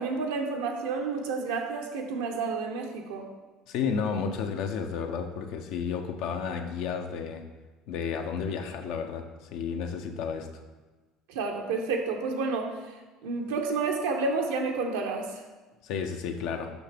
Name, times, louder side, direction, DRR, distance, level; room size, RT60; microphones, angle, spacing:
voice 1, 0.0-3.3 11.3-12.7 13.2-15.3, right 4 dB, 85° right, 2 dB, 0.9 m, -30 dB
voice 2, 3.7-7.4 7.9-10.5 15.8-16.7, left 6 dB, 70° left, 6 dB, 0.6 m, -32 dB
6.2 x 5.6 x 3.5 m, 1.2 s
supercardioid pair, 85°, 0 cm